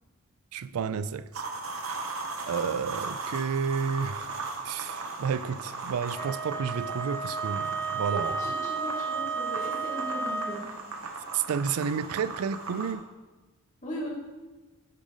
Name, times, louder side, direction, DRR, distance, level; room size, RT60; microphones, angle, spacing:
voice 1, 0.5-1.4 2.5-4.3 4.6-8.4 11.3-13.0, right 6 dB, 85° right, 0.4 m, -31 dB
sound 1, 1.3-12.9, right 3 dB, 70° right, 1.3 m, -38 dB
Wind instrument woodwind instrument, 6.1-10.7, right 5 dB, 10° left, 0.5 m, -32 dB
voice 2, 8.1-10.6 13.8-14.1, left 1 dB, 35° left, 2.6 m, -38 dB
9.9 x 5.1 x 5.5 m
head